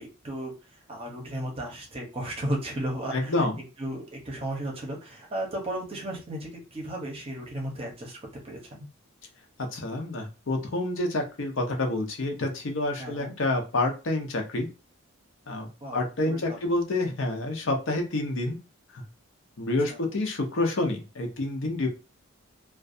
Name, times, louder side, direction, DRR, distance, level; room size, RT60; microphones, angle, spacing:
voice 1, 0.0-8.2 8.4-8.8 13.0-13.4 15.8-16.7, right 1 dB, 25° right, 0 dB, 0.7 m, -35 dB
voice 2, 3.1-3.6 9.6-14.7 15.5-18.6 18.9-19.0 19.6-21.9, left 2 dB, 65° left, 3 dB, 0.7 m, -28 dB
2.4 x 2.3 x 2.5 m, 0.31 s
head